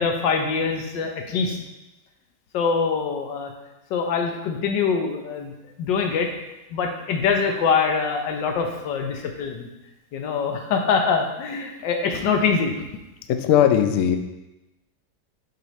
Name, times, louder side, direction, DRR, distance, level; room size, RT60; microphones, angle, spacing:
voice 1, 0.0-1.6 2.5-3.5 3.9-6.3 6.7-9.7 10.1-12.7, left 5 dB, 90° left, 4 dB, 1.5 m, -24 dB
voice 2, 13.3-14.2, left 10 dB, 70° left, 7 dB, 0.7 m, -18 dB
7.6 x 4.7 x 3.1 m, 0.98 s
omnidirectional pair, 1.9 m